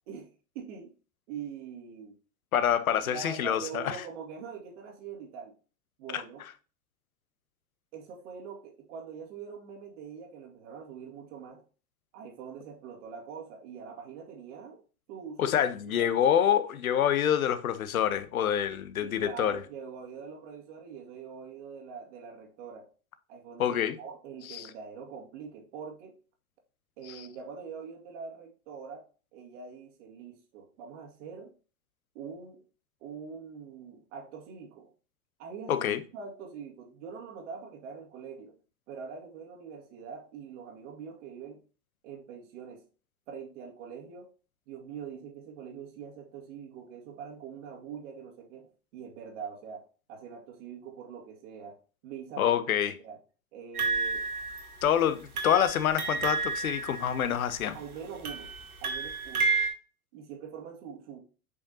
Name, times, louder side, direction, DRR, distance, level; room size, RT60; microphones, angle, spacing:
voice 1, 0.1-0.9 1.3-2.1 2.9-5.5 6.0-6.4 7.9-11.6 12.1-14.8 15.1-15.6 15.9-16.1 19.0-22.9 23.3-26.2 27.0-29.0 29.3-31.5 32.1-32.6 33.0-34.9 35.4-38.6 38.9-41.6 42.0-42.8 43.3-44.3 44.7-51.8 52.0-52.5 53.0-53.2 53.5-54.2 57.7-58.5 58.8-59.5 60.1-61.2, right 6 dB, 55° right, 2.1 m, -43 dB
voice 2, 2.5-4.0 6.1-6.2 15.4-19.6 23.6-24.0 24.5-24.7 27.1-27.2 35.7-36.0 52.4-52.9 54.8-57.8, left 9 dB, 70° left, 0.9 m, -26 dB
sound 1, 53.7-54.9 55.3-57.6 58.2-59.7, right 4 dB, 80° right, 1.8 m, -31 dB
8.3 x 5.2 x 2.8 m
figure-of-eight pair, 90°, 44 cm